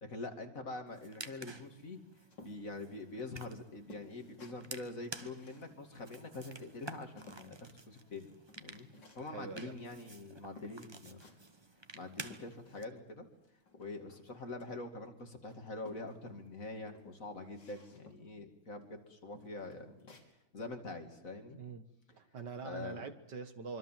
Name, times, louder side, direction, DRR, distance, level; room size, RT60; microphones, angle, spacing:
voice 1, 0.0-2.0 2.4-8.3 8.6-8.9 9.2-11.2 11.9-13.3 13.8-20.2 20.5-21.6 22.6-23.1, left 2 dB, 40° left, 5 dB, 2.8 m, -45 dB
sound 1, 0.9-12.8, right 2 dB, 20° right, 0.7 m, -51 dB
sound 2, 2.3-7.5 7.9-9.4 10.1-10.2 10.6-11.5 11.9-13.1 13.3-15.1 15.4-16.5 16.9-18.4 18.8-19.0 19.3-20.3, left 2 dB, 60° left, 4.3 m, -58 dB
voice 2, 9.2-9.7 21.5-21.8 22.1-23.8, right 5 dB, 60° right, 10 dB, 1.9 m, -44 dB
25.0 x 24.5 x 7.5 m, 0.83 s
omnidirectional pair, 2.2 m